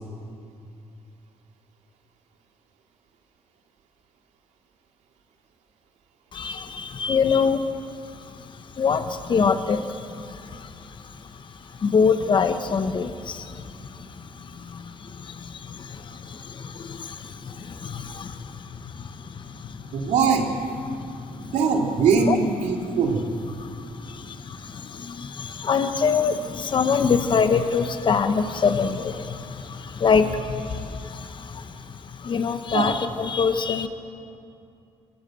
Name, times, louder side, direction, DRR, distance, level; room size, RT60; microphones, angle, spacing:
voice 1, 6.3-20.1 20.9-21.5 22.3-22.4 23.6-33.9, left 5 dB, 45° left, 9 dB, 1.1 m, -26 dB
voice 2, 19.9-20.5 21.5-23.3 32.7-32.9, right 5 dB, 85° right, 1 dB, 2.8 m, -21 dB
22.0 x 15.5 x 7.7 m, 2.5 s
cardioid pair, 105°, 12 cm